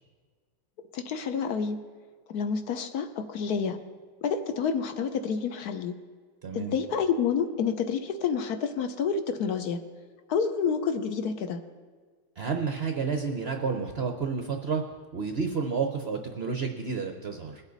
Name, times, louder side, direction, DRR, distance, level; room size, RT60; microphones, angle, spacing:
voice 1, 0.9-1.8 2.3-3.8 4.2-5.9 6.5-9.8 10.3-11.6, left 6 dB, 65° left, 8 dB, 1.1 m, -29 dB
voice 2, 6.4-6.8 12.4-14.8 15.1-17.6, right 5 dB, 60° right, 4 dB, 0.6 m, -30 dB
21.0 x 8.2 x 4.0 m, 1.6 s
omnidirectional pair, 2.2 m